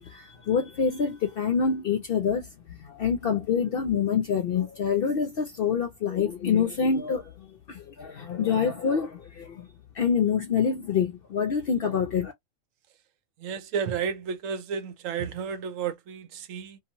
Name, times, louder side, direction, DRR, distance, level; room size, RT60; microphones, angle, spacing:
voice 1, 0.0-9.7 9.9-12.3, left 6 dB, 65° left, 0.5 m, -26 dB
voice 2, 13.4-16.8, right 7 dB, 75° right, 1.0 m, -32 dB
2.9 x 2.3 x 2.5 m
omnidirectional pair, 1.4 m